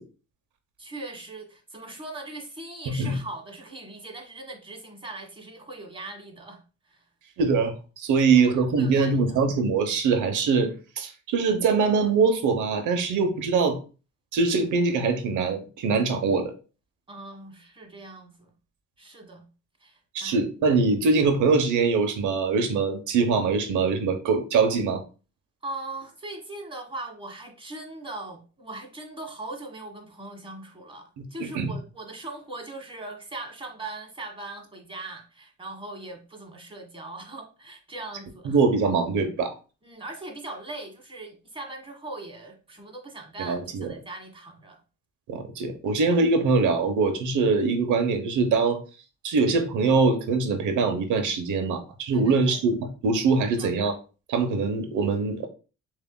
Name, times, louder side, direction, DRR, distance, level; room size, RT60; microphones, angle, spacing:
voice 1, 0.8-7.1 8.2-9.4 17.1-18.5 19.0-19.5 19.8-20.4 25.6-38.6 39.8-44.8 52.1-52.6 53.5-53.7, right 2 dB, 15° right, 1.4 m, -40 dB
voice 2, 2.9-3.2 7.4-13.8 14.3-16.5 20.1-25.0 31.2-31.7 38.4-39.5 43.4-43.9 45.3-48.8 49.2-53.9 54.3-55.5, right 4 dB, 80° right, 0.9 m, -23 dB
7.0 x 2.8 x 2.2 m
cardioid pair, 90°, 30 cm